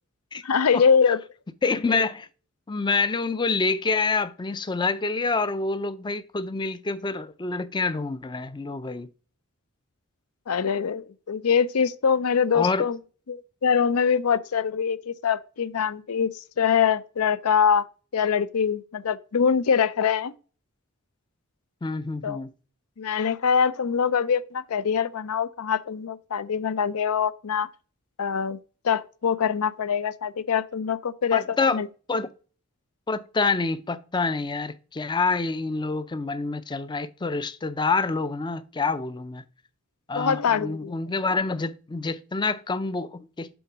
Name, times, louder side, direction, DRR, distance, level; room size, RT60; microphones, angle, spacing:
voice 1, 0.4-1.2 10.5-13.0 13.3-16.3 16.6-17.9 18.1-20.3 22.2-22.4 23.0-27.7 28.2-28.6 28.8-31.4 31.7-31.9 40.1-40.9, left 7 dB, 75° left, 0.5 m, -23 dB
voice 2, 1.6-2.3 2.7-9.1 12.5-12.9 21.8-22.5 31.3-31.8 32.1-32.3 33.1-39.4 40.1-43.5, left 4 dB, 20° left, 0.4 m, -27 dB
7.0 x 4.0 x 4.8 m
head